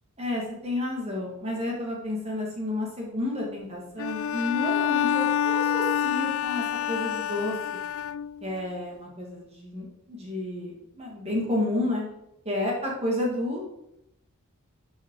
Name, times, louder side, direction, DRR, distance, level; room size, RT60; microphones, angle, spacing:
voice 1, 0.2-7.5 8.4-12.0 12.5-13.7, left 1 dB, 30° right, -2 dB, 2.4 m, -31 dB
Bowed string instrument, 4.0-8.6, left 9 dB, 60° left, 0.3 m, -27 dB
12.5 x 5.7 x 4.9 m, 0.83 s
head